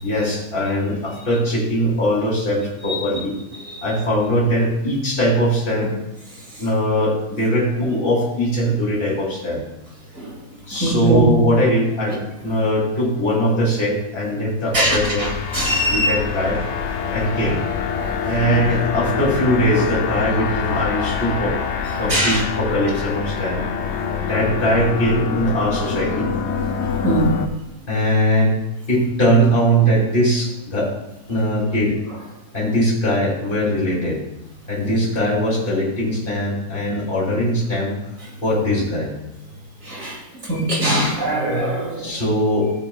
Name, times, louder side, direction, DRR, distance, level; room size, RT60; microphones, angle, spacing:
voice 1, 0.0-3.3 3.8-5.9 6.6-9.6 10.7-15.3 15.9-16.6 17.1-17.7 18.2-21.6 22.0-23.6 24.2-26.3 26.9-27.0 27.9-28.6 28.9-30.9 31.3-32.0 32.5-34.2 34.7-37.9 38.4-39.2 42.0-42.7, equal, 35° left, -4 dB, 2.9 m, -20 dB
voice 2, 10.8-11.2 14.7-16.2 18.0-18.1 22.1-22.4 27.0-27.3 39.8-40.2 40.5-42.1, right 1 dB, 65° right, -3 dB, 2.9 m, -21 dB
sound 1, 14.7-27.5, left 6 dB, 55° left, 0.9 m, -25 dB
15.0 x 7.9 x 2.3 m, 0.91 s
omnidirectional pair, 1.6 m